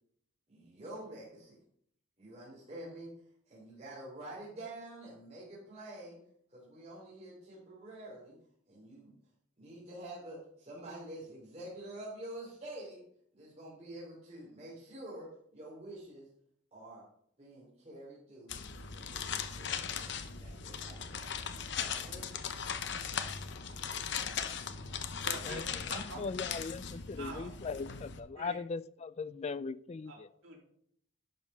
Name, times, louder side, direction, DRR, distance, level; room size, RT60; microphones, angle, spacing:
voice 1, 0.5-1.6 2.2-3.1 3.5-6.2 6.5-8.3 8.7-9.1 9.6-13.0 13.3-16.3 16.7-17.0 17.4-18.5 18.9-21.6 21.9-22.3 23.2-25.0, right 1 dB, 30° right, 3.1 m, -48 dB
sound 1, 18.5-28.2, left 7 dB, 60° left, 0.7 m, -39 dB
voice 2, 25.2-25.6 25.9-26.2 27.2-27.8 28.3-28.6 29.4-29.5 30.1-30.6, right 3 dB, 85° right, 2.9 m, -45 dB
voice 3, 26.2-30.3, left 4 dB, 30° left, 0.3 m, -39 dB
11.0 x 5.3 x 5.4 m
head